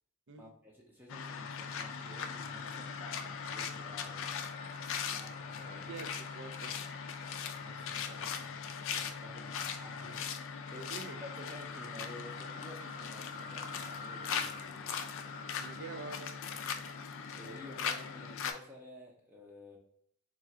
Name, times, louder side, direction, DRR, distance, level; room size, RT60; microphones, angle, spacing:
voice 1, 0.4-4.3 5.1-5.9 7.6-14.9 15.6-15.8 17.3-19.8, left 1 dB, 10° right, -3 dB, 0.6 m, -52 dB
sound 1, 1.1-18.5, left 6 dB, 60° left, 0.4 m, -40 dB
voice 2, 5.8-6.8 10.9-11.2 15.6-16.4, right 5 dB, 55° right, 7 dB, 0.5 m, -46 dB
3.6 x 2.5 x 4.2 m, 0.68 s
head